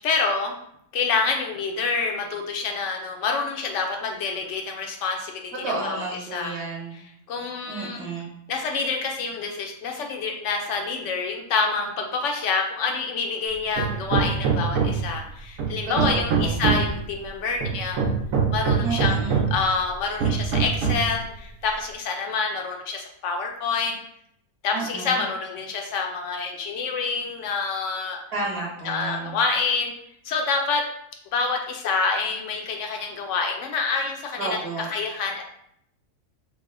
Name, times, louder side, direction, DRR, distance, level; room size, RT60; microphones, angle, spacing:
voice 1, 0.0-0.5 0.9-5.5 5.8-6.0 6.3-6.5 7.3-8.1 8.5-18.0 18.5-23.9 24.6-28.2 28.8-29.9 30.2-30.8 31.3-34.6 34.9-35.4, left 4 dB, 70° left, 2 dB, 0.8 m, -27 dB
voice 2, 5.5-7.0 7.7-8.3 16.0-16.6 18.8-19.4 24.7-25.2 28.3-29.4 34.4-34.9, right 3 dB, 30° right, -4 dB, 1.1 m, -31 dB
Hammer, 13.8-15.2 15.6-17.0 17.6-19.6 20.2-21.1, right 6 dB, 80° right, 1.0 m, -23 dB
3.3 x 2.1 x 3.6 m, 0.72 s
omnidirectional pair, 1.4 m